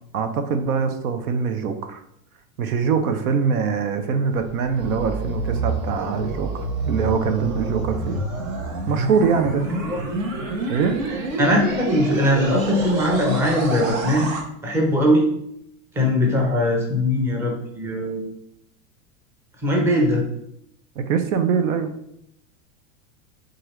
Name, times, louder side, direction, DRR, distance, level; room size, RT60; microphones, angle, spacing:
voice 1, 0.1-2.0 2.6-8.2 8.9-9.6 10.7-11.0 21.0-22.0, right 6 dB, 80° right, 8 dB, 0.7 m, -23 dB
sound 1, 4.3-14.4, right 3 dB, 65° right, 1.1 m, -28 dB
voice 2, 11.4-14.3 14.6-15.3 15.9-18.3 19.6-20.2, left 1 dB, 5° right, -1 dB, 0.5 m, -20 dB
4.7 x 2.5 x 3.0 m, 0.73 s
supercardioid pair, 135°, 43 cm